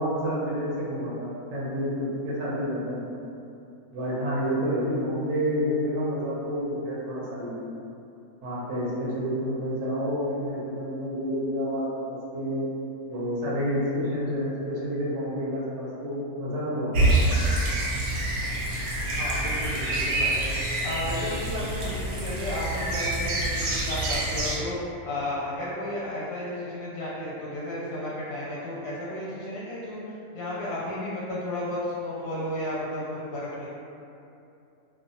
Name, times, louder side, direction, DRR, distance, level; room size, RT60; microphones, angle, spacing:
voice 1, 0.0-3.0 3.9-7.7 8.4-12.7 13.1-17.2, equal, 65° right, -7 dB, 0.9 m, -29 dB
sound 1, 16.9-24.6, right 1 dB, 85° right, 1.1 m, -26 dB
voice 2, 19.2-20.5 20.8-24.8 25.0-30.0 30.3-33.7, left 1 dB, 90° left, -7 dB, 1.1 m, -33 dB
2.4 x 2.1 x 2.6 m, 2.7 s
omnidirectional pair, 1.5 m